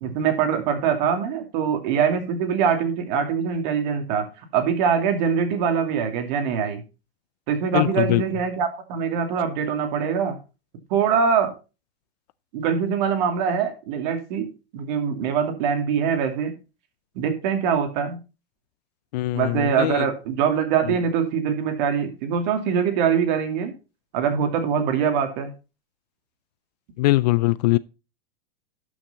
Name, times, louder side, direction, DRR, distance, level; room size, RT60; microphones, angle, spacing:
voice 1, 0.0-6.8 7.5-10.4 10.9-11.5 12.5-16.5 17.1-18.2 19.3-23.7 24.1-25.5, right 7 dB, 50° right, 2.6 m, -23 dB
voice 2, 7.7-8.2 19.1-20.1 20.8-20.9 27.0-27.8, left 19 dB, 45° left, 0.4 m, -21 dB
11.5 x 6.2 x 4.1 m
hypercardioid pair, 130°, 30 cm